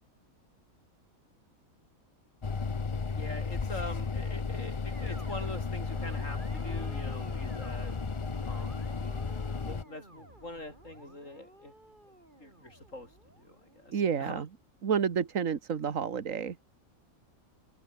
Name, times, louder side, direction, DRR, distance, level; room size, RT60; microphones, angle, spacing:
sound 1, 2.4-9.8, left 4 dB, 30° left, 0.7 m, -34 dB
voice 1, 3.1-7.9 8.4-8.8 9.6-11.7 12.4-13.1 13.4-14.4, left 1 dB, 60° left, 7.6 m, -44 dB
sound 2, 4.9-14.2, right 1 dB, 35° right, 7.1 m, -52 dB
voice 2, 13.9-14.5 14.8-16.6, right 7 dB, 65° right, 1.8 m, -30 dB
omnidirectional pair, 1.5 m